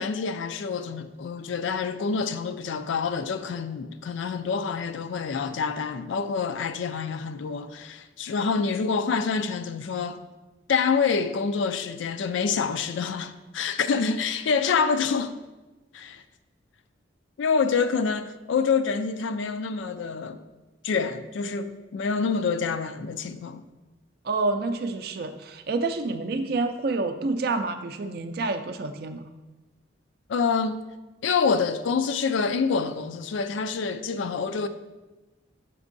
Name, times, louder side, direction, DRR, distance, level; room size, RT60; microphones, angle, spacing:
voice 1, 0.0-10.2 10.7-15.4 15.9-16.2 17.4-20.4 20.8-23.6 30.3-30.8 31.2-34.7, left 5 dB, 75° left, 0.3 m, -27 dB
voice 2, 24.2-29.3, right 3 dB, 50° right, 0.4 m, -28 dB
7.1 x 5.2 x 2.6 m
head